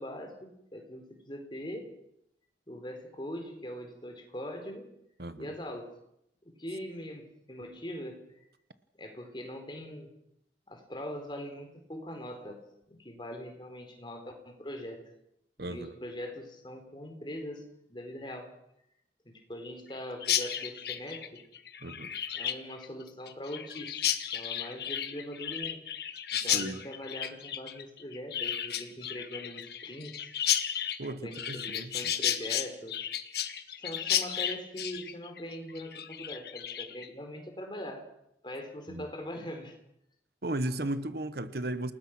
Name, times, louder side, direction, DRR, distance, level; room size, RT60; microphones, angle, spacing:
voice 1, 0.0-1.9 2.7-4.9 5.4-5.9 6.4-8.3 9.0-10.1 10.7-15.0 15.6-18.5 19.2-21.4 22.3-24.1 24.3-25.8 26.3-30.3 31.2-33.0 33.8-38.1 38.4-39.7, equal, 25° left, 4 dB, 4.1 m, -42 dB
voice 2, 5.2-5.5 15.6-15.9 21.8-22.1 26.4-26.8 31.0-31.9 38.9-39.1 40.4-41.9, right 1 dB, 55° right, 12 dB, 1.2 m, -35 dB
Chirp tweet, 20.2-37.1, left 10 dB, 60° left, 1.5 m, -33 dB
28.5 x 19.5 x 6.1 m, 0.79 s
head